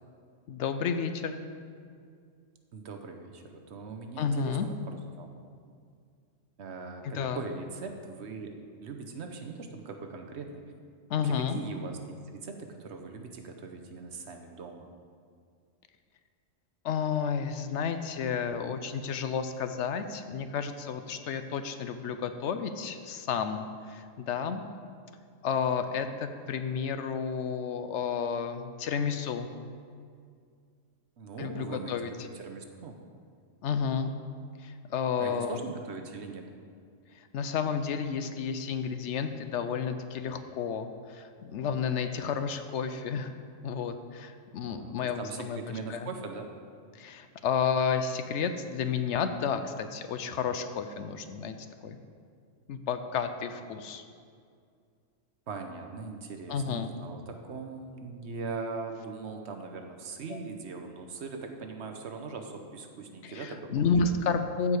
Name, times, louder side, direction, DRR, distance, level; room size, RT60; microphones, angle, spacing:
voice 1, 0.5-1.4 4.2-4.6 7.0-7.4 11.1-11.6 16.8-24.6 25.4-29.5 31.4-32.1 33.6-34.1 34.6-35.6 37.2-43.3 43.6-45.6 45.9-46.1 46.9-51.6 51.8-52.0 52.7-54.0 56.5-56.9 60.3-60.4 63.2-64.8, left 6 dB, 70° left, 9 dB, 0.8 m, -31 dB
voice 2, 2.7-5.3 6.6-8.5 8.8-10.6 11.2-12.0 12.2-14.9 31.2-32.0 32.3-33.0 35.2-36.5 44.7-46.5 55.5-64.1, right 4 dB, 60° right, 4 dB, 1.0 m, -40 dB
14.5 x 4.8 x 4.8 m, 2.2 s
omnidirectional pair, 1.3 m